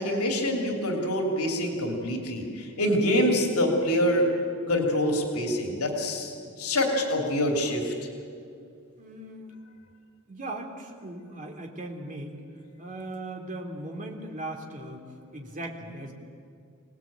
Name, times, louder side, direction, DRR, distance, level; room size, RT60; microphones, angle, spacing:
voice 1, 0.0-4.3 4.7-7.9, equal, 85° left, 2 dB, 3.1 m, -26 dB
voice 2, 9.0-9.5 10.3-12.4 12.8-15.0 15.3-16.1, right 1 dB, 35° right, 1 dB, 3.2 m, -38 dB
26.5 x 18.5 x 8.9 m, 2.4 s
head